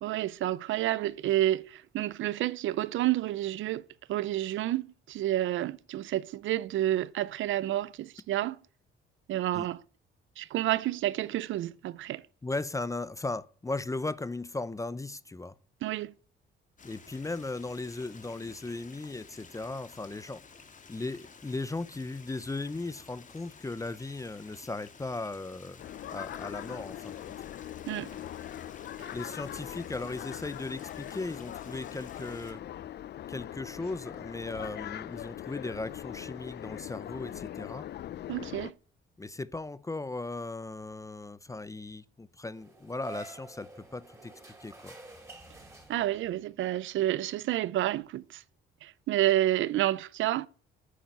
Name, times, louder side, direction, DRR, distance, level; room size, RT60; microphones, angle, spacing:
voice 1, 0.0-8.6 9.3-9.8 10.4-12.2 15.8-16.1 27.9-28.1 29.0-29.1 38.3-38.7 45.9-48.4 48.8-50.5, right 14 dB, 75° right, 0.6 m, -30 dB
voice 2, 12.4-15.5 16.8-20.4 20.9-25.8 26.1-27.3 29.1-32.6 33.3-37.9 39.2-44.3 44.6-45.0, left 2 dB, 15° left, 0.6 m, -37 dB
Stream, 16.8-32.5, left 5 dB, 40° left, 2.1 m, -53 dB
sound 1, 25.8-38.7, left 12 dB, 55° left, 0.5 m, -41 dB
sound 2, 42.5-46.4, right 3 dB, 15° right, 5.4 m, -49 dB
9.5 x 8.5 x 9.3 m
cardioid pair, 90°, 20 cm